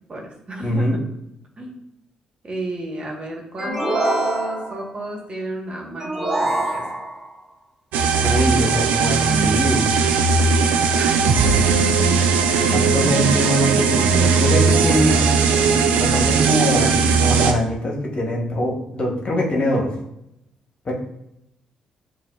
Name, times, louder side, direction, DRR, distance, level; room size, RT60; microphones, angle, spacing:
voice 1, 0.1-1.1 1.6-1.8 2.4-6.9 10.9-11.6, right 2 dB, 40° right, -1 dB, 1.2 m, -31 dB
voice 2, 0.6-1.0 8.2-9.9 12.7-15.2 16.0-19.9 20.8-20.9, equal, 45° left, -1 dB, 1.2 m, -23 dB
sound 1, 3.6-4.9 6.0-7.3, right 1 dB, 20° right, 0.8 m, -25 dB
sound 2, 7.9-17.5, right 5 dB, 80° right, 0.4 m, -18 dB
7.2 x 2.4 x 2.4 m, 0.80 s
supercardioid pair, 55°, 3 cm